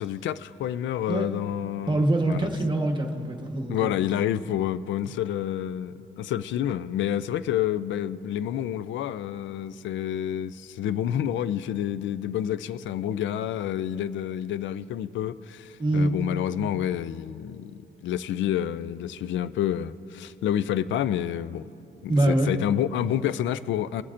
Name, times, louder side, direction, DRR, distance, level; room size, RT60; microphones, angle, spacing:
voice 1, 0.0-2.5 3.7-21.7 22.0-24.0, left 10 dB, 70° left, 0.4 m, -29 dB
voice 2, 1.9-3.9 15.8-16.1 22.1-22.6, right 1 dB, 25° right, 1.2 m, -24 dB
21.5 x 8.4 x 2.6 m
cardioid pair, 90°, 20 cm